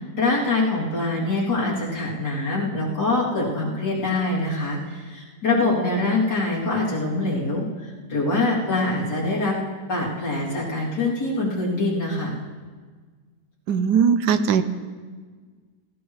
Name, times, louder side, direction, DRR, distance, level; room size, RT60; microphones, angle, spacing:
voice 1, 0.1-9.6 9.9-12.4, left 2 dB, 70° left, -6 dB, 3.6 m, -24 dB
voice 2, 13.7-14.6, right 7 dB, 75° right, 10 dB, 1.2 m, -19 dB
18.0 x 16.5 x 3.2 m, 1.5 s
omnidirectional pair, 1.9 m